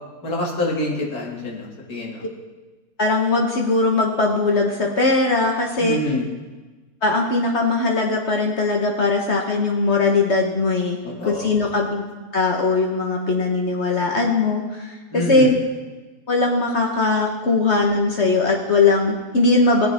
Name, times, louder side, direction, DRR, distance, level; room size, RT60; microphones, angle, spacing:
voice 1, 0.2-2.2 5.8-6.3 11.0-11.5 15.1-15.6, left 1 dB, 70° left, -2 dB, 2.5 m, -26 dB
voice 2, 3.0-6.0 7.0-11.0 11.2-12.0 12.3-14.9 15.3-15.5 16.3-19.9, left 3 dB, 50° left, 1 dB, 1.2 m, -20 dB
16.0 x 10.0 x 3.4 m, 1.2 s
omnidirectional pair, 1.7 m